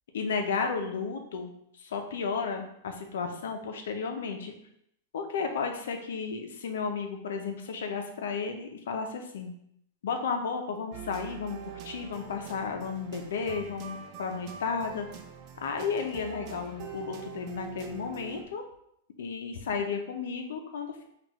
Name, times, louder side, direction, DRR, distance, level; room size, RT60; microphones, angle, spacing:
voice 1, 0.1-1.5 1.8-4.5 5.1-9.5 10.0-15.1 15.6-18.6 19.2-21.1, left 5 dB, 85° left, 5 dB, 0.7 m, -33 dB
sound 1, 10.9-18.4, right 7 dB, 40° right, 0.5 m, -44 dB
5.9 x 2.5 x 3.1 m, 0.72 s
supercardioid pair, 145°, 0 cm